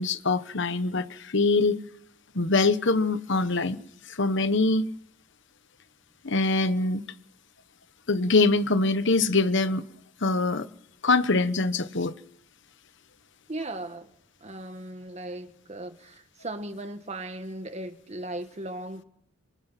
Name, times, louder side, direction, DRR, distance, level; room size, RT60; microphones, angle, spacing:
voice 1, 0.0-1.9 2.3-3.8 4.1-4.9 6.2-7.0 8.1-9.8 10.2-10.7 11.0-12.1, left 3 dB, 65° left, 1.2 m, -24 dB
voice 2, 13.5-14.1 14.4-19.0, right 1 dB, 35° right, 1.8 m, -37 dB
28.0 x 26.5 x 5.9 m
head